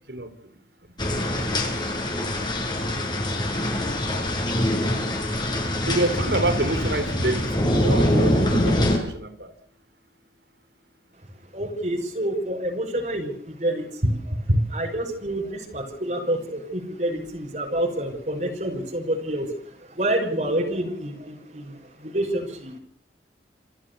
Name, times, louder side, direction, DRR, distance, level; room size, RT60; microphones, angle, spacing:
sound 1, 1.0-9.0, left 1 dB, 25° left, 6.1 m, -24 dB
voice 1, 5.9-9.5 14.0-14.7, right 1 dB, 75° right, 3.7 m, -26 dB
voice 2, 11.5-14.2 14.7-22.8, right 1 dB, 45° right, 5.9 m, -28 dB
28.5 x 14.0 x 7.0 m
head